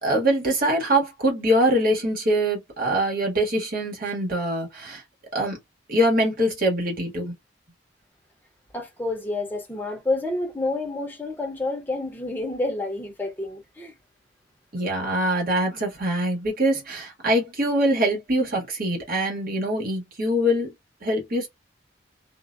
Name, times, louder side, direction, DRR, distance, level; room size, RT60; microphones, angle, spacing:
voice 1, 0.0-5.0 5.3-5.6 5.9-7.3 14.7-20.7 21.0-21.5, right 1 dB, 50° right, 1.2 m, -23 dB
voice 2, 8.7-13.9, left 2 dB, 10° left, 0.7 m, -29 dB
2.5 x 2.1 x 2.4 m
head